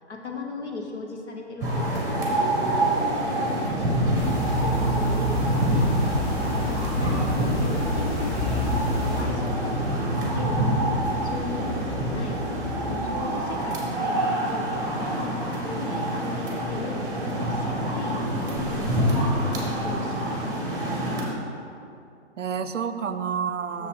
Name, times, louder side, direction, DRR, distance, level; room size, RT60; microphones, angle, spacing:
voice 1, 0.0-4.3 4.6-5.8 6.4-11.0 11.2-12.4 12.9-14.7 15.0-15.3 15.6-19.2 19.5-20.6 23.8-23.9, left 3 dB, 65° left, 1 dB, 1.1 m, -37 dB
sound 1, 1.6-21.2, right 1 dB, 10° right, 1.1 m, -26 dB
sound 2, 4.2-9.2, equal, 40° left, 1.6 m, -28 dB
voice 2, 7.0-7.8 22.4-23.9, right 7 dB, 85° right, 11 dB, 0.5 m, -30 dB
sound 3, 7.4-13.3, left 1 dB, 20° left, 0.8 m, -36 dB
6.7 x 5.7 x 4.9 m, 2.5 s
figure-of-eight pair, 135°, 36 cm